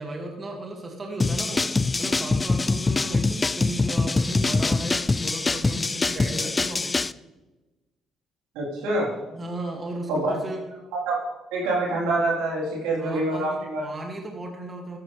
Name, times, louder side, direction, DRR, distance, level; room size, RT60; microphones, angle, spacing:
voice 1, 0.0-7.0 9.3-10.6 13.0-15.0, right 2 dB, 35° right, 1 dB, 2.2 m, -35 dB
sound 1, 1.2-7.1, left 3 dB, 25° left, 0.4 m, -24 dB
voice 2, 8.5-9.1 10.1-10.3 11.1-13.8, right 2 dB, 85° right, -4 dB, 4.0 m, -26 dB
13.5 x 11.0 x 3.4 m, 1.1 s
supercardioid pair, 65°, 0 cm